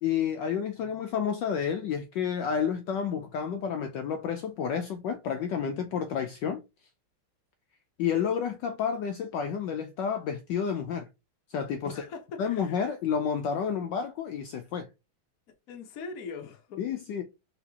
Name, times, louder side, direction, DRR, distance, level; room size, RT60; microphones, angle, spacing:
voice 1, 0.0-6.6 8.0-11.1 11.5-12.0 12.4-14.9 16.8-17.2, left 7 dB, 80° left, 1.0 m, -30 dB
voice 2, 0.8-1.2 11.8-12.8 15.7-16.8, left 4 dB, 55° left, 1.1 m, -42 dB
4.1 x 3.7 x 2.8 m
omnidirectional pair, 2.4 m